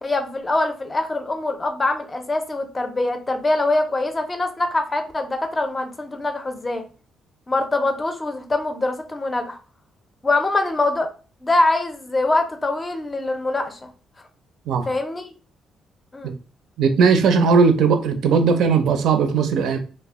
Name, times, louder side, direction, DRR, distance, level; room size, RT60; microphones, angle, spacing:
voice 1, 0.0-6.9 7.5-9.6 10.2-11.1 11.4-13.9 14.9-15.3 16.1-16.3, left 2 dB, 25° left, 0.5 m, -23 dB
voice 2, 16.8-19.8, right 5 dB, 80° right, 0.4 m, -18 dB
2.1 x 2.0 x 3.5 m
cardioid pair, 90°, 0 cm